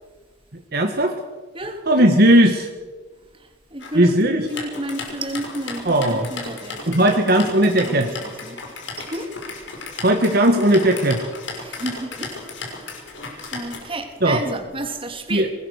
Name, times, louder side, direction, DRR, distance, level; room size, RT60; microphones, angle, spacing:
voice 1, 0.7-1.2 1.9-2.7 4.0-4.5 5.9-6.3 6.9-8.1 10.0-11.2 14.2-14.4 15.3-15.5, right 1 dB, 60° right, 4 dB, 1.8 m, -17 dB
voice 2, 3.3-7.4 7.8-9.3 11.5-12.4 13.5-15.5, right 1 dB, 30° right, 5 dB, 3.2 m, -32 dB
sound 1, 3.8-14.1, left 3 dB, 90° left, 6.0 m, -35 dB
23.5 x 20.0 x 6.6 m, 1.3 s
head